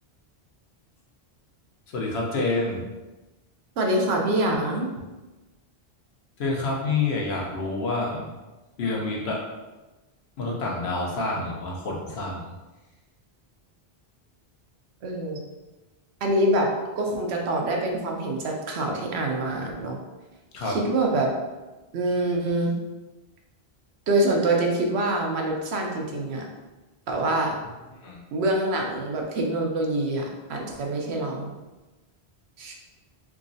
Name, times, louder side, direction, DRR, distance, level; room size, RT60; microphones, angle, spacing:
voice 1, 1.9-2.8 6.4-8.3 8.8-9.4 10.4-12.5 20.5-20.8 27.9-28.2, left 3 dB, 80° left, -2 dB, 1.0 m, -28 dB
voice 2, 3.8-4.9 15.0-15.4 16.2-16.7 17.0-20.0 20.6-21.3 21.9-22.7 24.1-26.5 27.1-27.6 28.3-31.5 32.6-32.8, right 1 dB, 85° right, 1 dB, 0.9 m, -25 dB
3.6 x 3.0 x 2.6 m, 1.1 s
omnidirectional pair, 1.1 m